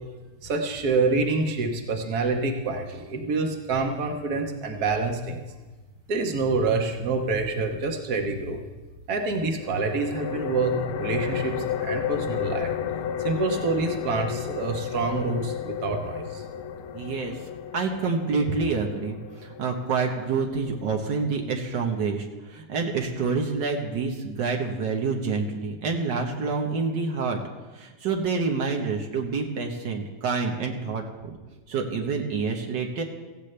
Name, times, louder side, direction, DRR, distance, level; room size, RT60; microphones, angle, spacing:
voice 1, 0.4-5.4 6.1-8.6 9.1-12.7 13.2-16.4, right 3 dB, 60° right, 3 dB, 1.7 m, -27 dB
sound 1, 9.6-21.0, left 9 dB, 65° left, 0.8 m, -33 dB
voice 2, 16.9-17.4 17.7-27.4 27.7-31.4 31.7-33.0, right 4 dB, 80° right, 2 dB, 1.9 m, -27 dB
17.0 x 15.0 x 3.3 m, 1.2 s
omnidirectional pair, 1.9 m